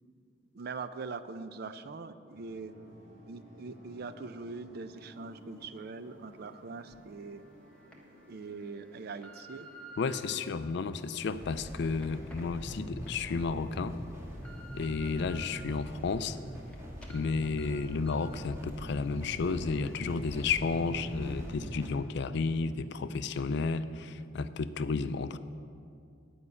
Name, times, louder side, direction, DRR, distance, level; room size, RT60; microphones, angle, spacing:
voice 1, 0.5-2.7 3.3-7.4 8.3-9.7 10.5-10.7, right 4 dB, 55° right, 12 dB, 0.4 m, -42 dB
sound 1, 2.3-21.9, equal, 70° right, 2.3 m, -56 dB
sound 2, 6.9-7.0 7.6-7.9 8.6-10.2 10.9-13.2 13.6-13.7 14.1-15.4 15.9-16.7 17.0-17.2 17.6-17.7 18.1-18.3 18.7-18.8, right 2 dB, 5° left, 1.1 m, -53 dB
voice 2, 10.0-14.0 14.7-16.4 17.1-25.4, left 4 dB, 65° left, 13 dB, 0.4 m, -32 dB
sound 3, 11.3-21.9, equal, 15° right, 1.6 m, -43 dB
9.9 x 5.4 x 8.2 m, 2.4 s
head